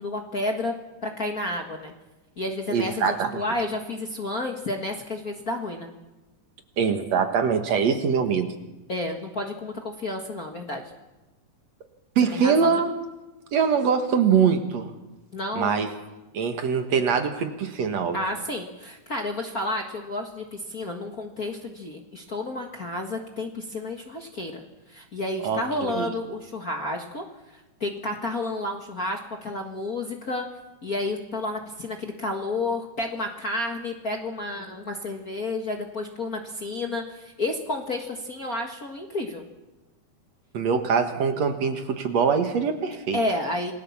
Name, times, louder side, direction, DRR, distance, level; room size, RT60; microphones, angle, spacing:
voice 1, 0.0-1.9 2.4-5.9 8.9-10.8 12.3-12.7 15.3-15.7 18.1-27.3 27.5-39.5 43.1-43.7, left 2 dB, 35° left, 2 dB, 1.6 m, -31 dB
voice 2, 2.7-3.4 6.8-8.5 12.2-12.9 13.5-14.9 15.5-15.9 16.3-18.2 25.4-26.1 40.5-43.2, right 6 dB, 60° right, 6 dB, 2.6 m, -23 dB
27.5 x 19.5 x 7.3 m, 1.1 s
omnidirectional pair, 3.6 m